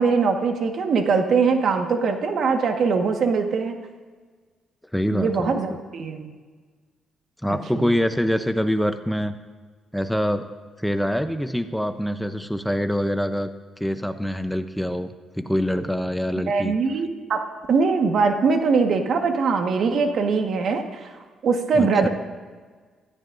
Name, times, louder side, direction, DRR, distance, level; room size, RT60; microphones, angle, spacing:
voice 1, 0.0-3.8 5.1-6.3 7.5-7.9 16.5-21.1 21.4-22.1, right 4 dB, 60° right, 4 dB, 1.5 m, -22 dB
voice 2, 4.9-5.6 7.4-9.4 9.9-10.5 10.8-13.5 13.8-16.7 21.8-22.1, equal, ahead, 8 dB, 0.7 m, -25 dB
22.5 x 14.0 x 2.7 m, 1.5 s
cardioid pair, 90°, 0 cm